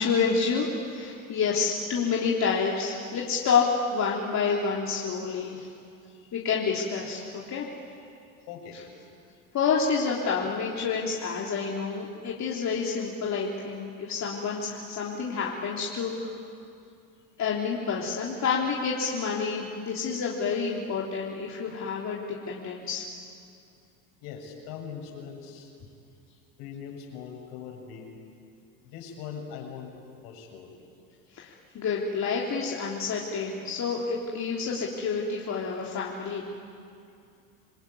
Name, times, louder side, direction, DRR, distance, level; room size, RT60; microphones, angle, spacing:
voice 1, 0.0-5.7 6.3-7.7 9.5-16.4 17.4-23.1 31.3-36.4, left 5 dB, 40° left, -3 dB, 3.5 m, -28 dB
voice 2, 8.4-9.0 24.2-25.7 26.6-28.1 28.8-29.9 30.2-30.7, left 7 dB, 65° left, 1 dB, 7.0 m, -41 dB
28.0 x 21.0 x 9.8 m, 2.4 s
hypercardioid pair, 85°, 42 cm